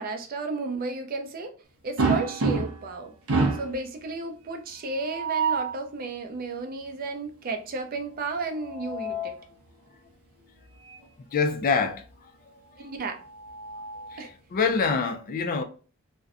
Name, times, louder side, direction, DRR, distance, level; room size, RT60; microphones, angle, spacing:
voice 1, 0.0-1.5 1.8-3.1 3.5-9.4 12.8-13.2 14.2-14.3, right 3 dB, 45° right, 0.4 m, -33 dB
sound 1, 2.0-2.9 3.3-3.8 5.0-5.7 8.4-9.4 10.9-11.0 11.4-11.5 13.0-14.3, right 4 dB, 85° right, 0.6 m, -28 dB
voice 2, 11.3-12.0 14.1-14.2 14.5-15.6, left 5 dB, 40° left, 0.3 m, -25 dB
2.5 x 2.1 x 2.4 m
head